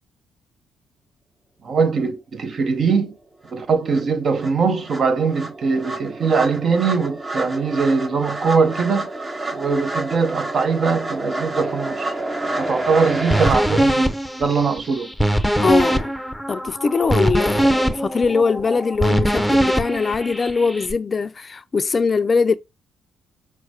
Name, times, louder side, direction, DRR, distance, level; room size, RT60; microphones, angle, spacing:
voice 1, 1.6-3.1 3.5-9.1 9.5-12.1 12.6-15.1, right 5 dB, 50° right, 0.8 m, -21 dB
sound 1, 3.5-3.6 3.9-13.6, right 2 dB, 25° right, 0.9 m, -29 dB
sound 2, 13.3-20.9, right 1 dB, ahead, 0.7 m, -21 dB
voice 2, 15.6-16.1 16.5-22.5, left 4 dB, 35° left, 0.4 m, -21 dB
5.7 x 2.1 x 2.8 m
hypercardioid pair, 50°, 0 cm